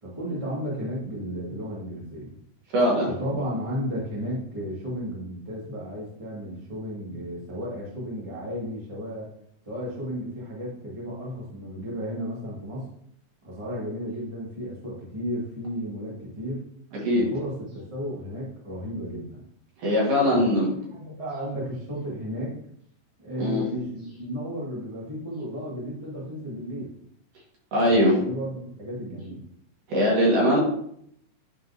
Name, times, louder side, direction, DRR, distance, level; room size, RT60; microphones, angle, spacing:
voice 1, 0.0-2.3 3.0-9.3 9.6-12.9 13.4-16.6 17.2-19.4 20.2-20.6 20.9-22.5 23.2-26.9 27.9-29.4, equal, 20° right, -6 dB, 0.8 m, -33 dB
voice 2, 2.7-3.1 16.9-17.3 19.8-20.7 23.4-23.6 27.7-28.2 29.9-30.6, equal, 65° right, -4 dB, 3.2 m, -21 dB
11.0 x 3.8 x 2.7 m, 0.70 s
omnidirectional pair, 4.3 m